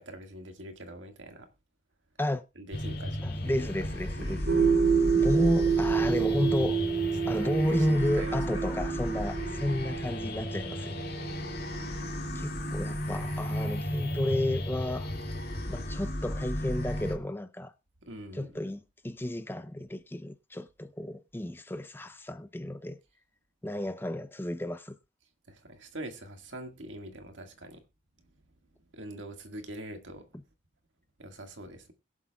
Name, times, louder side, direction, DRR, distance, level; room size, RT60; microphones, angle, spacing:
voice 1, 0.0-1.5 2.6-3.7 4.2-4.7 7.4-8.7 9.4-9.8 12.4-12.5 18.0-18.6 25.5-27.8 28.9-30.3 31.2-31.9, right 1 dB, 80° right, 1.9 m, -44 dB
sound 1, 2.7-17.2, left 1 dB, 55° left, 2.3 m, -34 dB
voice 2, 3.2-4.7 5.1-6.8 7.3-11.0 12.3-15.1 15.7-17.7 18.3-23.0 23.6-25.0, left 1 dB, 10° left, 0.5 m, -32 dB
sound 2, 4.5-13.0, right 6 dB, 60° right, 1.8 m, -29 dB
21.5 x 7.4 x 2.3 m
head